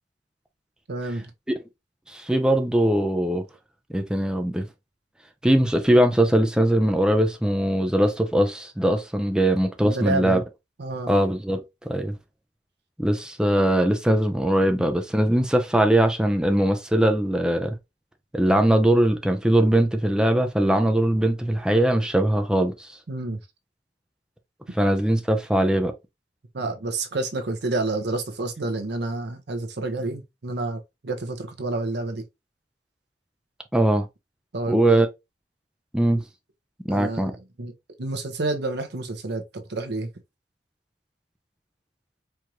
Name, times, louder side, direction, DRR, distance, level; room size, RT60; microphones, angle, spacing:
voice 1, 0.9-1.3 9.8-10.4 10.8-11.1 23.1-23.4 26.5-32.2 34.5-35.0 36.9-37.7 38.0-40.1, right 2 dB, 65° right, 0.8 m, -29 dB
voice 2, 2.1-3.4 3.9-4.7 5.4-10.4 11.1-12.1 13.0-17.7 18.3-23.0 24.7-25.9 33.7-34.1 34.7-35.1 35.9-36.2 36.9-37.3, right 1 dB, 5° right, 0.4 m, -21 dB
4.5 x 2.5 x 2.9 m
head